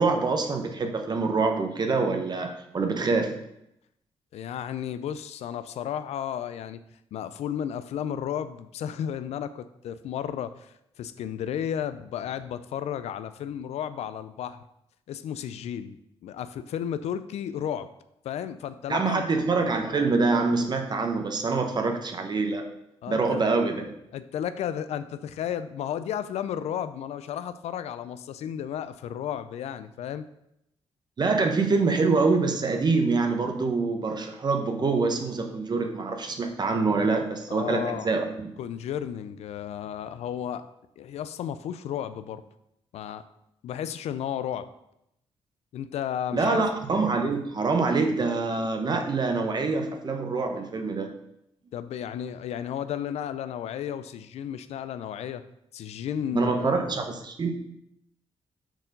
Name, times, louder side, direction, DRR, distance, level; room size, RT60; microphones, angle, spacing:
voice 1, 0.0-3.4 18.9-22.7 23.1-23.8 31.2-38.5 46.3-51.1 56.3-57.5, right 4 dB, 40° right, 4 dB, 0.8 m, -25 dB
voice 2, 4.3-6.8 7.1-14.6 15.1-16.0 16.2-17.9 18.2-19.2 23.0-23.4 24.1-30.3 37.5-38.1 38.6-40.7 41.0-42.4 42.9-43.2 43.6-44.7 45.7-46.7 51.7-55.5 55.7-56.8, left 9 dB, 85° left, 13 dB, 0.4 m, -33 dB
6.1 x 4.4 x 5.2 m, 0.80 s
cardioid pair, 95°, 11 cm